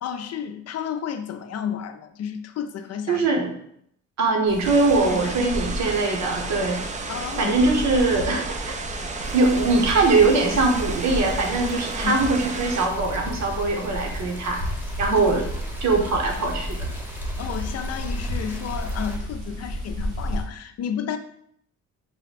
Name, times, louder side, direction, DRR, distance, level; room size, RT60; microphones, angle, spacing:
voice 1, 0.0-3.2 5.1-5.5 5.8-6.0 7.1-7.8 9.0-9.2 12.0-12.2 17.4-21.2, left 8 dB, 55° left, 7 dB, 0.5 m, -32 dB
voice 2, 3.1-3.5 4.2-6.8 7.4-8.7 9.3-14.6 15.0-15.5 15.8-16.9, right 3 dB, 65° right, 2 dB, 1.0 m, -22 dB
sound 1, 4.5-20.4, equal, 90° right, 1.6 m, -32 dB
sound 2, 4.6-12.9, right 4 dB, 25° right, 0.4 m, -33 dB
sound 3, 9.2-19.2, equal, 5° right, 0.8 m, -43 dB
4.8 x 2.2 x 4.1 m, 0.71 s
cardioid pair, 90°, 30 cm